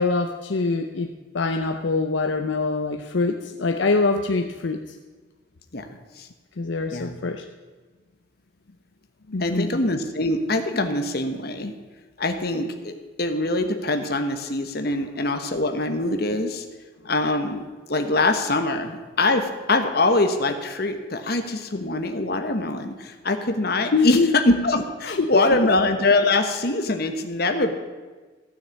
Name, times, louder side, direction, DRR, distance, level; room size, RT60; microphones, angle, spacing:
voice 1, 0.0-5.0 6.6-7.4 9.3-9.8 23.9-24.3 25.1-25.7, left 3 dB, 70° left, 6 dB, 0.6 m, -24 dB
voice 2, 9.4-11.7 12.2-16.6 17.0-27.7, left 2 dB, 50° left, 6 dB, 1.2 m, -23 dB
14.5 x 6.5 x 8.4 m, 1.3 s
head